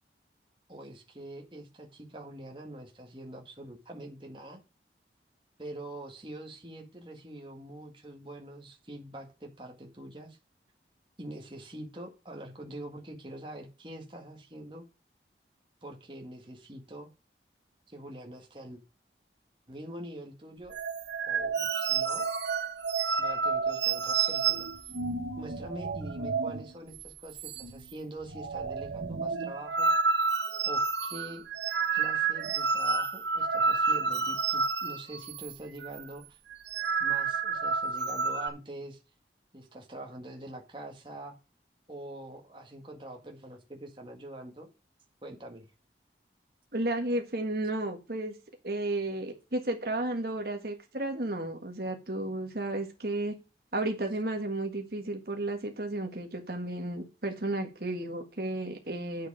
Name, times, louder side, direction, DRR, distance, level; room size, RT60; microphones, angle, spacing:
voice 1, 0.7-4.6 5.6-10.4 11.2-14.8 15.8-17.1 17.9-18.8 19.7-20.7 21.3-22.3 23.2-24.7 25.4-29.9 30.7-31.5 31.9-36.4 37.0-39.0 39.5-41.4 41.9-44.7 45.2-45.7, right 1 dB, 30° right, 1 dB, 1.8 m, -44 dB
sound 1, 20.7-26.7 26.9-27.1 27.4-27.9 28.2-35.6 35.8-36.0 36.5-38.5, right 5 dB, 85° right, 0.9 m, -30 dB
voice 2, 46.7-48.3 48.6-53.3 53.7-59.3, right 2 dB, 55° right, 4 dB, 1.6 m, -33 dB
8.9 x 6.6 x 4.9 m, 0.30 s
head